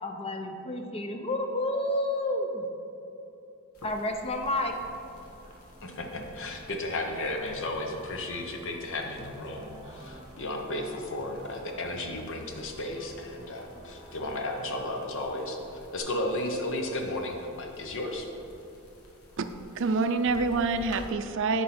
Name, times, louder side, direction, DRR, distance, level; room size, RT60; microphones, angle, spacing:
voice 1, 0.0-2.7 3.8-4.7, left 1 dB, 25° left, 4 dB, 0.6 m, -30 dB
sound 1, 3.7-21.1, equal, 85° left, 1.2 m, -52 dB
sound 2, 4.7-16.0, right 1 dB, 20° right, 0.8 m, -52 dB
voice 2, 5.8-15.6 15.9-18.3, left 1 dB, 60° left, 3 dB, 0.9 m, -34 dB
voice 3, 19.8-21.6, right 4 dB, 60° right, 9 dB, 0.4 m, -26 dB
9.7 x 4.7 x 4.3 m, 2.9 s
head